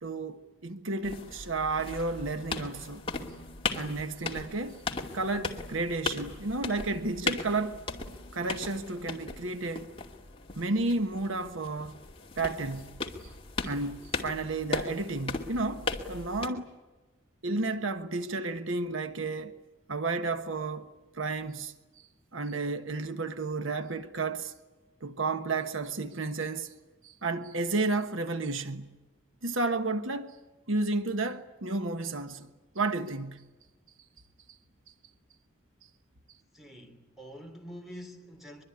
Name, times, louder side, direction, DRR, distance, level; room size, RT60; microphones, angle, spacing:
voice 1, 0.0-3.0 3.7-4.8 5.1-7.8 8.3-9.9 10.5-12.0 12.4-13.0 13.6-16.7 17.4-19.6 19.9-20.9 21.1-21.7 22.3-24.5 25.0-26.7 27.0-29.0 29.4-30.4 30.7-32.5 32.7-33.5, right 3 dB, 75° right, 1.3 m, -32 dB
sound 1, 1.0-16.5, left 4 dB, 25° left, 2.4 m, -38 dB
voice 2, 36.5-38.6, equal, ahead, 3.5 m, -46 dB
23.5 x 23.0 x 9.7 m
head